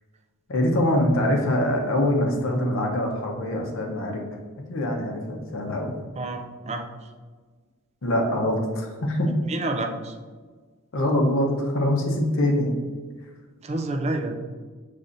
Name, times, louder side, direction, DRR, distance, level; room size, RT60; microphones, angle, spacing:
voice 1, 0.5-4.2 4.7-5.9 8.0-9.3 10.9-12.8, left 1 dB, 65° left, 1 dB, 0.8 m, -24 dB
voice 2, 6.2-6.8 9.5-10.2 13.6-14.4, right 2 dB, 30° right, 4 dB, 0.4 m, -28 dB
5.4 x 3.2 x 2.6 m, 1.4 s
head